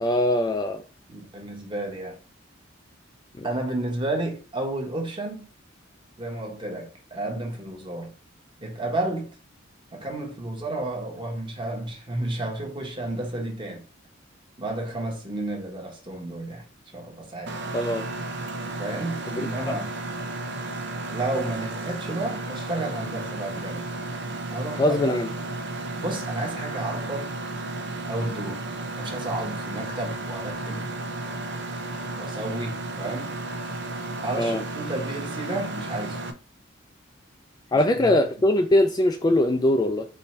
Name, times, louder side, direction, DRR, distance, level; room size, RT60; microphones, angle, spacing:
voice 1, 0.0-0.8 3.4-3.5 17.7-18.0 19.3-19.4 24.8-25.3 34.4-34.6 37.7-40.1, left 1 dB, 20° left, 0.3 m, -21 dB
voice 2, 1.1-2.2 3.4-5.5 6.2-8.1 8.6-9.3 9.9-13.8 14.6-16.7 16.9-17.8 18.8-19.9 21.1-23.8 24.5-25.4 26.0-27.3 28.1-28.6 29.0-30.9 32.2-33.3 34.2-36.2 37.7-38.1, right 2 dB, 25° right, 1.1 m, -32 dB
Mechanisms, 17.5-36.3, right 2 dB, 65° right, 0.6 m, -33 dB
4.5 x 2.7 x 4.2 m
head